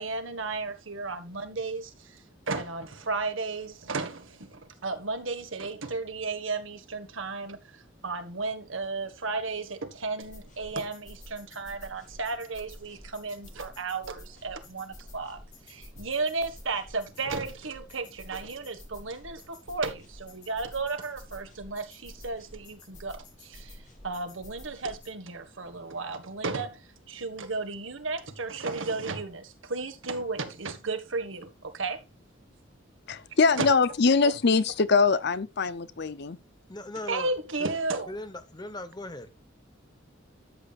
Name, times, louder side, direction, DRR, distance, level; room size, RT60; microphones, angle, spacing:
voice 1, 0.0-2.2 2.5-15.4 15.7-32.0 33.6-33.7 34.2-34.3 37.1-38.1, right 3 dB, 80° right, 1.6 m, -34 dB
sound 1, 10.2-25.1, left 1 dB, 40° left, 5.3 m, -50 dB
voice 2, 33.1-36.4, left 4 dB, 55° left, 0.7 m, -23 dB
voice 3, 36.7-37.3 37.6-37.7 38.1-39.3, left 1 dB, 20° left, 1.1 m, -38 dB
13.0 x 7.7 x 2.5 m
head